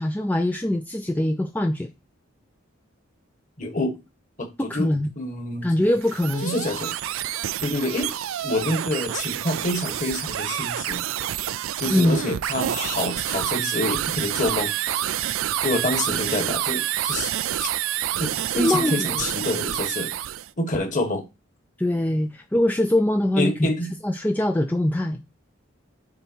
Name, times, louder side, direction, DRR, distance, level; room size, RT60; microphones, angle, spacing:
voice 1, 0.0-1.9 4.6-5.1 5.6-6.5 11.9-12.2 18.5-19.2 21.8-23.7 24.0-25.2, left 1 dB, 10° left, 0.4 m, -23 dB
voice 2, 3.6-4.0 4.4-5.7 6.4-6.9 7.6-8.1 8.4-11.0 11.8-14.7 15.6-17.3 17.6-17.7 18.2-20.1 20.6-21.2 23.3-23.9, left 1 dB, 40° left, 1.5 m, -27 dB
sound 1, 5.9-20.5, right 12 dB, 85° right, 0.4 m, -28 dB
6.6 x 4.1 x 4.5 m
head